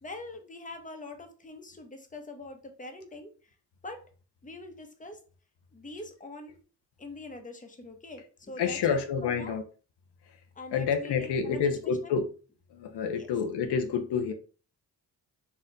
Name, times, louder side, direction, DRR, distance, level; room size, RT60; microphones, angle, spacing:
voice 1, 0.0-3.5 3.8-4.0 4.4-5.2 5.7-6.6 7.0-9.6 10.5-11.7 12.0-12.2 13.1-13.3, left 2 dB, 20° left, 1.0 m, -44 dB
voice 2, 8.6-9.6 10.3-10.4 10.7-12.3 12.7-14.3, left 6 dB, 85° left, 0.7 m, -28 dB
4.3 x 2.5 x 3.9 m
cardioid pair, 70°, 40 cm